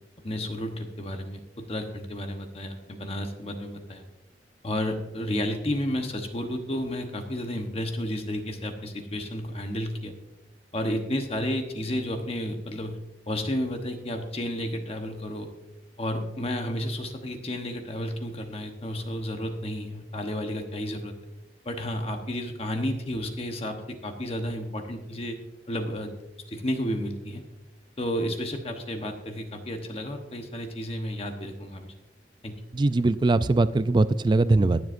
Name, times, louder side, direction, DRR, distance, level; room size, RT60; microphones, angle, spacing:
voice 1, 0.2-4.0 4.6-10.1 10.7-13.0 13.3-15.5 16.0-21.1 21.6-25.4 25.7-26.1 26.5-27.4 28.0-31.9 32.4-32.6, left 1 dB, 35° left, 5 dB, 1.0 m, -32 dB
voice 2, 32.7-34.8, right 2 dB, 25° right, 14 dB, 0.3 m, -21 dB
22.5 x 7.7 x 2.6 m, 0.99 s
head